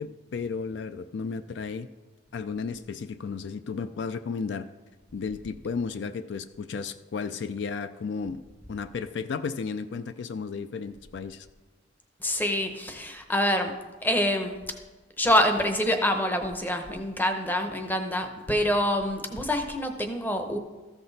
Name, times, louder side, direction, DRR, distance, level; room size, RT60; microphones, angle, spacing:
voice 1, 0.0-1.9 2.3-4.7 5.1-8.4 8.7-11.5, left 5 dB, 65° left, 12 dB, 0.4 m, -33 dB
voice 2, 12.2-13.7 14.0-14.6 15.2-20.6, left 1 dB, 10° left, 6 dB, 0.7 m, -26 dB
14.0 x 6.0 x 4.0 m, 1.3 s
head